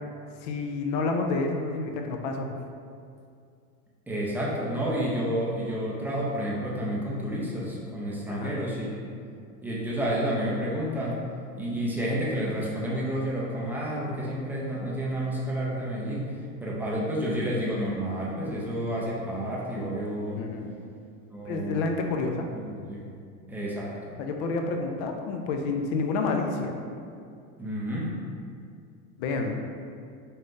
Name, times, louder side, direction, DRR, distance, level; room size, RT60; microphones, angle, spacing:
voice 1, 0.4-2.5 8.3-8.6 20.4-20.7 21.4-22.5 24.2-26.8 29.2-29.5, left 3 dB, 45° left, 4 dB, 0.5 m, -29 dB
voice 2, 4.1-9.1 9.6-11.2 11.6-16.3 16.6-20.4 21.3-21.9 22.5-23.1 23.5-24.2 27.6-28.1 29.4-29.5, equal, 5° right, -6 dB, 0.5 m, -30 dB
4.0 x 2.5 x 3.6 m, 2.3 s
hypercardioid pair, 105°, 44 cm